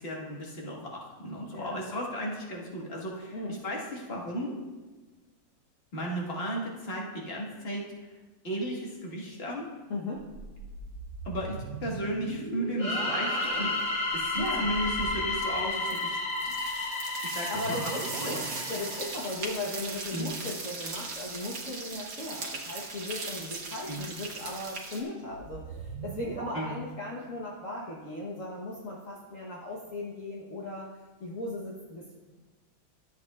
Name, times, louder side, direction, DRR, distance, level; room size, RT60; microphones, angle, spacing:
voice 1, 0.0-4.5 5.9-7.9 8.4-9.7 11.3-13.7 14.1-16.2 17.3-17.5 18.2-18.5 20.1-20.3 23.9-24.0 26.5-26.7, equal, 40° left, -2 dB, 1.7 m, -35 dB
voice 2, 3.3-3.6 9.9-10.3 14.4-14.7 17.5-30.9 31.2-32.1, left 2 dB, 55° left, -4 dB, 1.4 m, -37 dB
sound 1, 10.1-14.7 17.5-19.6 25.2-26.5, right 5 dB, 85° right, 1.3 m, -41 dB
sound 2, 12.8-19.4, left 2 dB, 85° left, 2.1 m, -32 dB
sound 3, 13.4-13.8 14.1-25.0, right 3 dB, 60° right, 1.6 m, -39 dB
13.0 x 8.0 x 2.4 m, 1.3 s
omnidirectional pair, 1.7 m